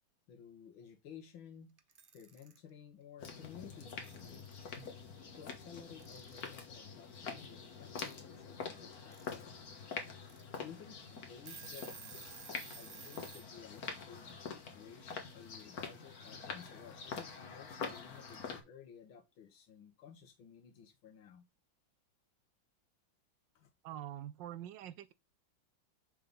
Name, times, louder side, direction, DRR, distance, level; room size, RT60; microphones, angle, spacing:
voice 1, 0.3-1.8 2.1-4.7 5.4-9.7 10.6-12.4 12.7-14.3 14.7-21.5 23.6-23.7, left 8 dB, 90° left, 2.0 m, -55 dB
Alarm / Clock, 1.8-2.6 3.7-3.8 4.0-4.9 6.0-6.6 8.0-8.2 8.9-9.3 9.8-9.9 10.3-10.4 10.9-11.0 11.3-13.5, right 6 dB, 50° right, 0.6 m, -52 dB
sound 1, 3.2-18.6, left 5 dB, 50° left, 1.8 m, -46 dB
voice 2, 23.8-25.1, right 11 dB, 75° right, 1.2 m, -45 dB
6.6 x 3.9 x 5.2 m
omnidirectional pair, 2.1 m